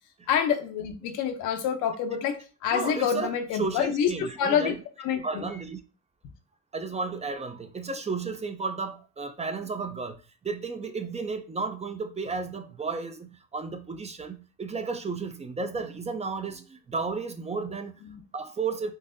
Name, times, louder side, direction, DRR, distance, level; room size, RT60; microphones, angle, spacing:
voice 1, 0.3-5.5 18.1-18.2, left 8 dB, 90° left, 0.7 m, -27 dB
voice 2, 2.7-4.8 5.2-5.8 6.7-17.9 18.3-18.9, right 4 dB, 20° right, 0.5 m, -33 dB
3.9 x 2.6 x 2.6 m
cardioid pair, 90°, 30 cm